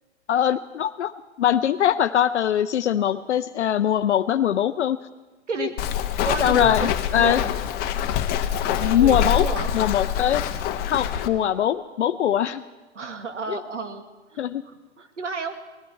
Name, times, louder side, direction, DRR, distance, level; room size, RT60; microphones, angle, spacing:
voice 1, 0.3-1.1 1.4-5.0 5.6-5.7 6.4-7.4 8.8-9.5 9.7-10.5 10.8-12.6 13.5-13.6 14.4-14.6, left 10 dB, 70° left, 9 dB, 0.6 m, -22 dB
Walk footsteps, 5.8-11.3, left 9 dB, 25° left, 0.8 m, -25 dB
voice 2, 6.2-6.9 7.1-7.5 9.0-9.7 12.9-14.0 14.3-15.5, right 4 dB, 80° right, 7 dB, 1.7 m, -31 dB
19.5 x 12.5 x 4.4 m, 1.2 s
figure-of-eight pair, 115°, 36 cm